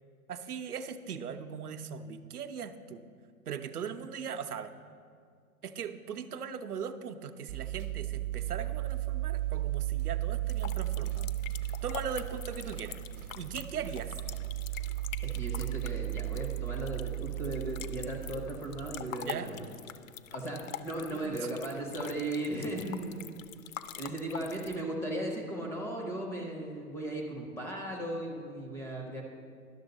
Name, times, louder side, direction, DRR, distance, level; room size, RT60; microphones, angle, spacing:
voice 1, 0.3-3.0 3.5-4.7 5.6-11.3 11.8-13.0 13.4-14.1 19.3-19.5 21.1-21.5, right 7 dB, 85° right, 9 dB, 0.7 m, -39 dB
sound 1, 7.5-19.1, right 16 dB, 55° right, 0.8 m, -35 dB
sound 2, 10.5-24.8, left 11 dB, 65° left, 0.5 m, -45 dB
voice 2, 15.2-19.7 20.3-23.3 23.6-29.2, right 1 dB, 5° left, 0 dB, 0.4 m, -37 dB
11.5 x 6.3 x 3.9 m, 2.2 s
hypercardioid pair, 120°, 44 cm